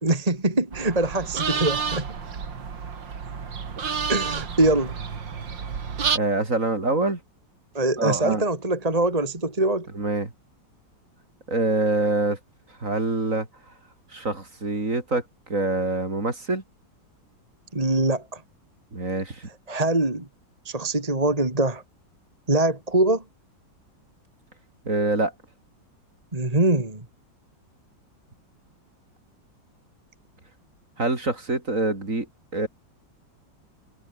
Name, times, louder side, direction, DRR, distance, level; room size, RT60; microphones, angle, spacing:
voice 1, 0.0-2.1 4.1-5.0 7.7-9.9 17.7-18.4 19.7-20.3 20.6-21.8 22.5-23.2 26.3-27.0, right 2 dB, 20° right, 2.9 m, -23 dB
sound 1, 0.7-6.2, right 6 dB, 70° right, 3.0 m, -30 dB
voice 2, 6.1-7.2 8.0-8.4 9.9-10.3 11.5-12.4 12.8-13.5 14.1-15.2 15.5-16.6 18.9-19.5 24.9-25.3 31.0-32.3 32.5-32.7, right 2 dB, 40° right, 4.3 m, -25 dB
omnidirectional pair, 2.1 m